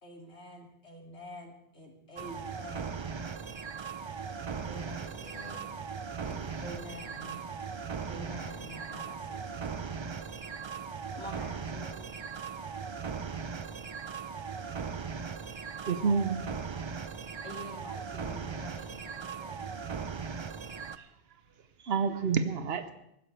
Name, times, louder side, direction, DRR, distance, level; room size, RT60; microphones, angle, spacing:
voice 1, 0.0-3.2 4.6-5.1 6.6-7.5 8.1-9.9 10.4-10.6 11.2-12.0 17.4-19.7, equal, 90° left, 1 dB, 2.9 m, -47 dB
sound 1, 2.2-21.0, right 6 dB, 35° right, 0.5 m, -39 dB
voice 2, 5.0-6.7, left 1 dB, 50° left, -2 dB, 3.3 m, -52 dB
voice 3, 15.8-16.5 16.7-16.8 21.0-21.1 21.8-22.9, right 5 dB, 70° right, 9 dB, 1.2 m, -29 dB
23.5 x 15.0 x 3.3 m, 0.79 s
omnidirectional pair, 1.1 m